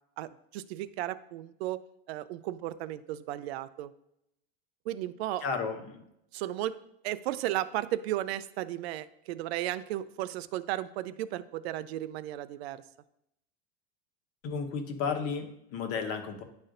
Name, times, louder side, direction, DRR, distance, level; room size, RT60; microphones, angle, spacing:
voice 1, 0.2-1.8 2.1-3.9 4.9-5.4 6.3-6.8 7.0-12.8, right 14 dB, 80° right, 14 dB, 0.5 m, -34 dB
voice 2, 5.4-6.0 14.4-16.4, left 5 dB, 50° left, 5 dB, 1.2 m, -33 dB
10.5 x 4.1 x 2.6 m, 0.79 s
supercardioid pair, 130°, 31 cm